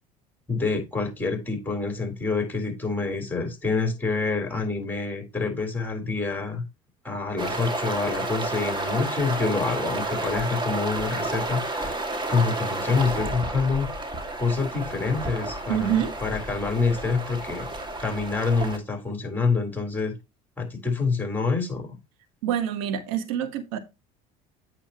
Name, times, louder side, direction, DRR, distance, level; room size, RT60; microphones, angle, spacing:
voice 1, 0.5-6.6 7.0-13.9 14.4-17.7 18.0-20.1 20.6-21.9, left 4 dB, 10° left, 3.8 m, -27 dB
sound 1, 7.4-18.8, right 2 dB, 25° right, 2.2 m, -31 dB
voice 2, 15.7-16.1 22.4-23.8, right 10 dB, 85° right, 1.4 m, -26 dB
8.7 x 7.1 x 3.0 m
supercardioid pair, 85°, 18 cm